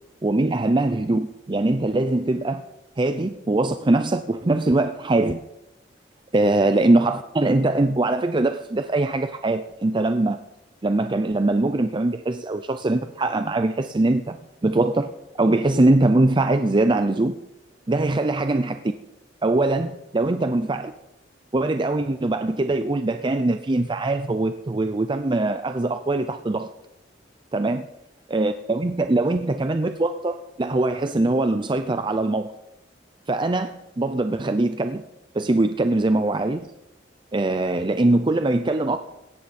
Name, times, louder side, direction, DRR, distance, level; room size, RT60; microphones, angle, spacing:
voice 1, 0.2-2.6 3.0-5.4 6.3-10.4 10.8-14.4 14.6-15.1 15.4-17.4 17.9-18.8 19.4-20.9 21.5-26.7 27.5-27.9 28.3-32.5 33.3-35.0 35.3-36.7 37.3-39.0, right 2 dB, 25° right, 9 dB, 0.5 m, -22 dB
17.5 x 13.0 x 4.3 m, 0.93 s
head